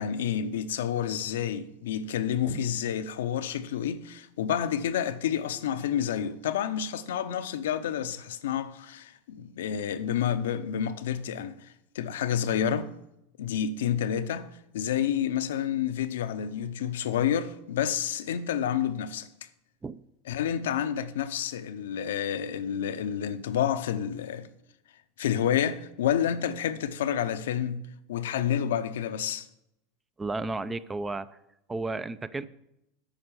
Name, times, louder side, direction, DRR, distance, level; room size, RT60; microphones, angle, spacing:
voice 1, 0.0-12.9 13.4-19.3 20.3-24.5 25.2-29.5, left 9 dB, 75° left, 0.6 m, -29 dB
voice 2, 30.2-31.4 31.7-32.5, right 3 dB, 15° right, 0.4 m, -33 dB
8.9 x 5.2 x 6.8 m
hypercardioid pair, 95°, 0 cm